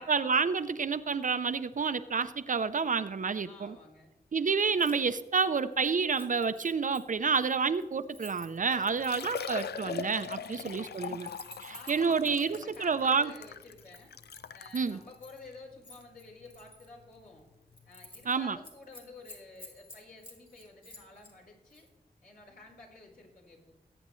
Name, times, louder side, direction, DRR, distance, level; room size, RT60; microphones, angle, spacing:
voice 1, 0.0-3.7 4.3-11.3 11.6-13.3 14.7-15.0 18.3-18.6, right 5 dB, 50° right, 12 dB, 0.6 m, -29 dB
voice 2, 3.4-4.1 8.7-9.4 10.3-10.7 11.7-14.1 14.5-17.4 17.8-21.9 22.2-23.7, left 3 dB, 60° left, -4 dB, 4.3 m, -52 dB
Keys jangling, 4.7-5.0 5.3-9.8 10.5-12.8 13.4-15.4 15.8-16.9 17.3-17.4 17.7-18.4 18.6-21.3 21.7-21.9, left 1 dB, 30° left, 2.9 m, -52 dB
Liquid, 8.4-8.5 8.9-14.8 15.5-15.6 16.0-16.1 17.7-17.8 18.0-18.1, left 7 dB, 85° left, 0.4 m, -41 dB
19.0 x 8.7 x 3.2 m, 1.0 s
wide cardioid pair, 75°, 17 cm